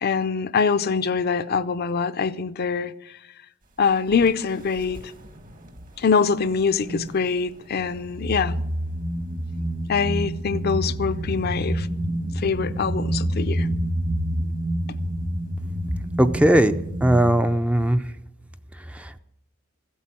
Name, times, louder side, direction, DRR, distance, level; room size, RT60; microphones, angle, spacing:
voice 1, 0.0-2.9 3.8-5.0 6.0-8.5 9.9-11.9 12.4-13.7, left 5 dB, 50° left, 0.5 m, -24 dB
sound 1, 4.1-4.3 4.8-5.9 6.3-7.2 7.7-17.4, equal, 45° right, 1.3 m, -28 dB
voice 2, 16.2-18.0 18.9-19.2, right 1 dB, 5° right, 0.4 m, -19 dB
15.0 x 8.3 x 7.6 m
head